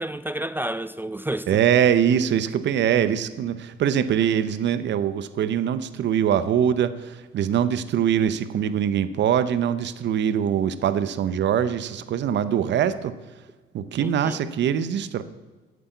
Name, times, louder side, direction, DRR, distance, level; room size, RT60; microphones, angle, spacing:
voice 1, 0.0-1.6 14.0-14.4, right 1 dB, 10° right, 0.4 m, -30 dB
voice 2, 1.5-13.1 13.7-15.2, right 9 dB, 65° right, 0.7 m, -23 dB
8.4 x 7.6 x 8.2 m
cardioid pair, 90°, 20 cm